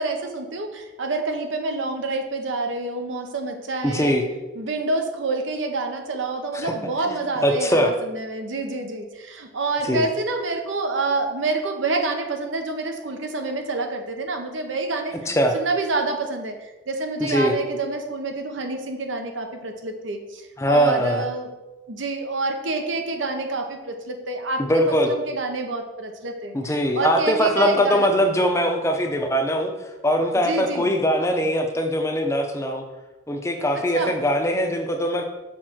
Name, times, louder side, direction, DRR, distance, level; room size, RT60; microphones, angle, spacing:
voice 1, 0.0-4.2 4.5-15.2 15.5-21.5 21.9-26.6 26.9-28.2 30.4-30.9 33.7-34.2, right 3 dB, 75° right, 4 dB, 0.9 m, -27 dB
voice 2, 3.8-4.2 6.5-6.7 7.4-7.9 9.9-10.1 15.3-15.6 17.2-17.5 20.6-21.3 24.6-25.1 26.5-29.7 30.0-32.8 33.3-35.2, equal, 15° left, 4 dB, 0.6 m, -21 dB
6.3 x 3.7 x 6.1 m, 1.1 s
head